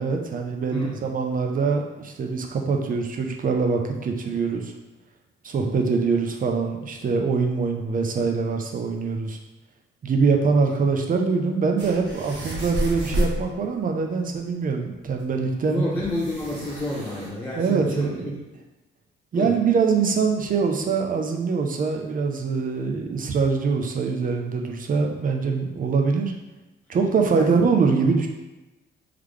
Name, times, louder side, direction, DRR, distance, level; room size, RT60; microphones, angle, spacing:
voice 1, 0.0-4.7 5.4-9.4 10.0-15.8 17.5-18.2 19.3-26.3 26.9-28.3, right 5 dB, 45° right, 3 dB, 0.6 m, -23 dB
voice 2, 0.7-1.1 15.7-18.4 19.3-19.6 27.3-27.5, left 1 dB, 10° left, -7 dB, 0.7 m, -30 dB
sound 1, 11.8-13.4 14.9-15.0 15.2-15.3 16.0-17.3, equal, 70° right, 1.2 m, -29 dB
3.8 x 3.2 x 3.2 m, 1.0 s
cardioid pair, 90°, 20 cm